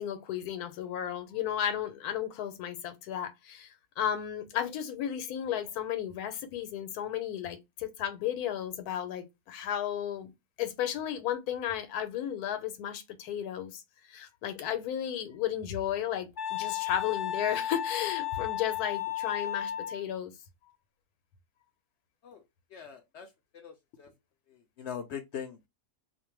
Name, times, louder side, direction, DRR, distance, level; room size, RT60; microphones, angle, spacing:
voice 1, 0.0-10.3 10.6-13.8 14.1-20.3, left 10 dB, 85° left, 1.1 m, -34 dB
Wind instrument woodwind instrument, 16.4-20.0, left 11 dB, 30° left, 0.4 m, -33 dB
voice 2, 22.7-23.3 23.5-24.1 24.5-25.7, left 8 dB, 70° left, 0.7 m, -42 dB
2.6 x 2.1 x 3.0 m
omnidirectional pair, 1.6 m